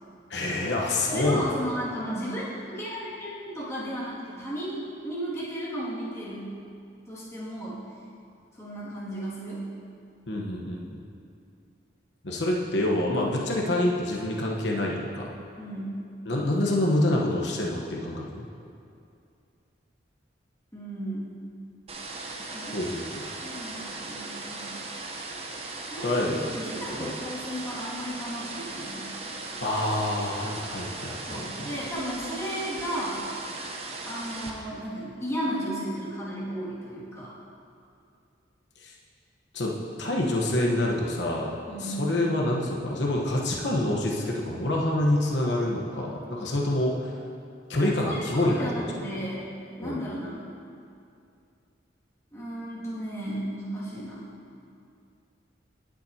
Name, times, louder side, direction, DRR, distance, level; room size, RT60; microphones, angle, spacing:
voice 1, 0.3-1.6 10.3-11.0 12.2-15.3 16.3-18.4 22.7-23.2 26.0-26.5 27.0-27.1 29.6-31.4 38.8-38.9 39.5-41.5 41.8-47.1 47.7-48.8 49.8-50.0, left 1 dB, 75° left, -2 dB, 1.2 m, -27 dB
voice 2, 1.1-2.5 2.7-6.5 7.1-7.8 8.6-9.6 15.5-16.0 20.7-21.3 22.5-22.8 23.4-24.8 25.9-26.0 26.5-29.1 31.3-33.2 34.0-37.3 41.7-42.0 47.8-49.4 49.8-50.5 52.3-54.3, equal, 15° left, -9 dB, 2.3 m, -34 dB
sound 1, 21.9-34.5, right 3 dB, 30° right, 0.9 m, -38 dB
19.0 x 7.5 x 2.9 m, 2.5 s
head